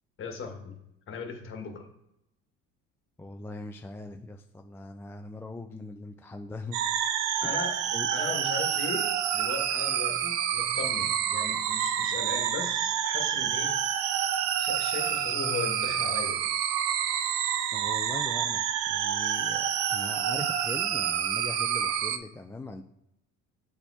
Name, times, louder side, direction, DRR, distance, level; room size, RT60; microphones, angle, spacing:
voice 1, 0.2-0.7 1.1-1.9 7.4-7.8 8.1-14.2 14.6-16.5, left 5 dB, 40° left, 3 dB, 1.7 m, -38 dB
voice 2, 3.2-6.8 7.4-7.6 7.9-8.1 17.7-22.8, left 2 dB, 10° left, 4 dB, 0.4 m, -41 dB
sound 1, 6.7-22.2, right 9 dB, 80° right, 0.6 m, -28 dB
7.1 x 3.5 x 4.1 m, 0.83 s
cardioid pair, 120°, 30 cm